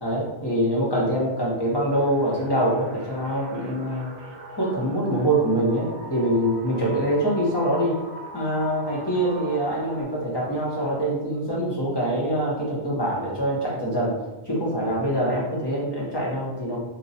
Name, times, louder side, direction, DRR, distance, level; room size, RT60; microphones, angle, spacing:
voice 1, 0.0-4.1 4.5-8.0 8.3-14.2 14.4-16.8, right 1 dB, 25° left, -5 dB, 0.8 m, -24 dB
sound 1, 2.0-10.0, right 1 dB, 55° right, 0.6 m, -40 dB
2.7 x 2.2 x 4.0 m, 1.1 s
omnidirectional pair, 1.1 m